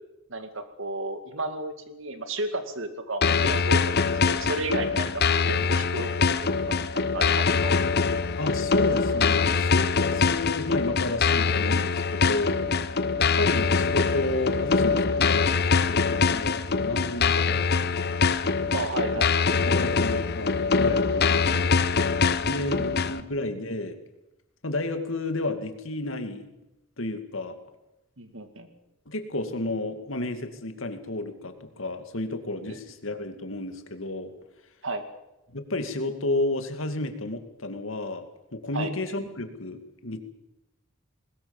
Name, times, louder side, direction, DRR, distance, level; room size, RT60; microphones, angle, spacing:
voice 1, 0.3-6.1 6.7-7.8 18.7-19.3 22.5-23.2 28.2-28.7 32.7-32.8 34.8-35.0 38.7-38.9, right 2 dB, 65° right, 8 dB, 2.3 m, -33 dB
sound 1, 3.2-23.2, left 5 dB, 50° left, 0.8 m, -23 dB
voice 2, 8.4-12.6 13.2-15.6 15.9-18.1 19.6-21.9 22.5-24.0 24.6-26.5 27.0-27.6 29.1-34.3 35.5-38.2 38.5-40.2, left 2 dB, 70° left, 7 dB, 2.3 m, -32 dB
21.0 x 19.5 x 7.2 m, 0.94 s
head